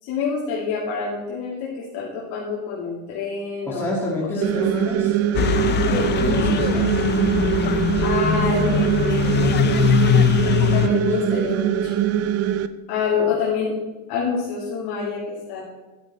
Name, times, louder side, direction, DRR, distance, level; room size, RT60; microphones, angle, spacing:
voice 1, 0.0-4.9 5.9-6.1 8.0-9.5 10.7-12.0 12.9-13.7 14.1-15.6, left 5 dB, 65° left, -5 dB, 2.6 m, -27 dB
voice 2, 3.7-5.2 6.1-6.9 10.4-11.3, left 1 dB, 5° left, -5 dB, 1.8 m, -29 dB
sound 1, 4.4-12.7, right 11 dB, 35° right, 0.5 m, -22 dB
sound 2, 5.3-10.9, left 10 dB, 25° left, 0.4 m, -21 dB
11.5 x 8.8 x 4.3 m, 1.2 s
cardioid pair, 150°, 41 cm